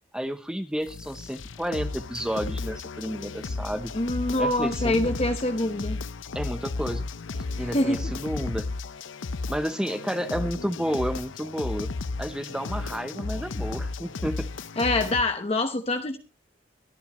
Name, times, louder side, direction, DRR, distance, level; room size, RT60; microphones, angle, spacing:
voice 1, 0.1-3.9 4.4-5.1 6.3-7.0 7.4-8.7 9.5-11.9 12.2-14.5, equal, 5° right, 9 dB, 0.6 m, -31 dB
sound 1, 0.9-15.2, left 3 dB, 85° left, 0.7 m, -34 dB
voice 2, 3.9-6.0 7.6-8.0 14.8-16.2, left 2 dB, 30° left, 6 dB, 0.9 m, -25 dB
23.0 x 10.5 x 3.0 m, 0.31 s
head